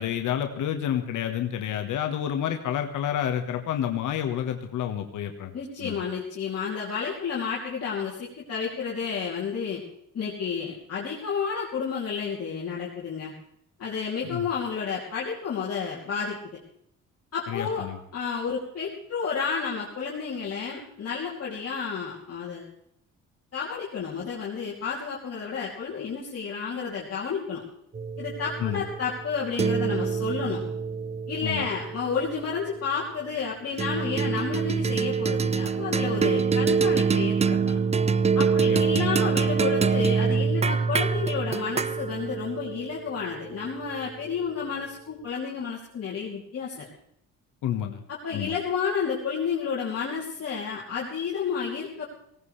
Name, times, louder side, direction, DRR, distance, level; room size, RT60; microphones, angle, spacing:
voice 1, 0.0-5.5 5.8-6.0 14.3-14.5 17.5-18.0 28.6-28.8 31.4-31.7 38.6-39.1 47.6-48.1 48.3-48.5, left 10 dB, 80° left, 4 dB, 1.5 m, -29 dB
voice 2, 5.5-9.8 10.1-13.3 13.8-16.4 17.3-22.7 23.5-27.6 28.2-30.6 31.3-37.8 38.3-46.9 48.1-52.0, left 6 dB, 55° left, -5 dB, 3.1 m, -31 dB
sound 1, 27.9-32.6 33.8-44.3, right 5 dB, 20° right, 0.4 m, -26 dB
18.0 x 17.5 x 3.3 m, 0.74 s
cardioid pair, 90°, 30 cm